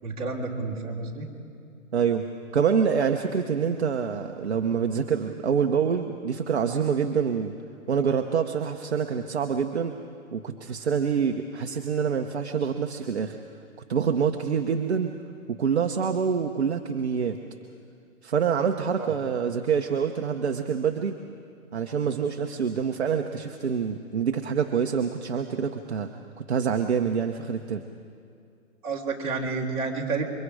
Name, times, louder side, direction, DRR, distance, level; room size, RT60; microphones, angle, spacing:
voice 1, 0.0-1.3 19.0-19.1 28.8-30.3, right 4 dB, 25° right, -5 dB, 2.9 m, -30 dB
voice 2, 1.9-2.2 2.5-7.5 7.9-9.9 10.3-13.4 13.9-15.1 15.5-17.4 18.2-21.2 21.7-26.1 26.5-27.8, right 6 dB, 50° right, 4 dB, 1.0 m, -26 dB
28.5 x 24.0 x 4.9 m, 2.4 s
hypercardioid pair, 170°, 43 cm